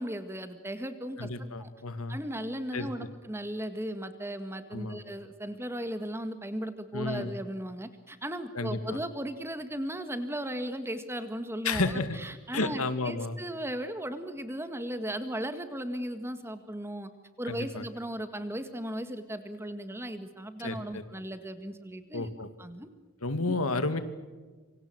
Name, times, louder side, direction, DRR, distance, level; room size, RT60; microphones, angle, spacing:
voice 1, 0.0-1.7 2.1-17.1 17.4-22.3 22.6-22.9 23.5-23.6, right 1 dB, 10° right, 9 dB, 1.8 m, -36 dB
voice 2, 1.2-2.2 2.7-3.1 4.7-5.0 6.9-7.3 8.5-9.0 11.6-12.2 12.5-13.4 17.5-17.8 20.6-21.0 22.1-22.5 23.2-24.0, left 3 dB, 85° left, 10 dB, 2.4 m, -31 dB
27.0 x 25.5 x 6.3 m, 1.3 s
head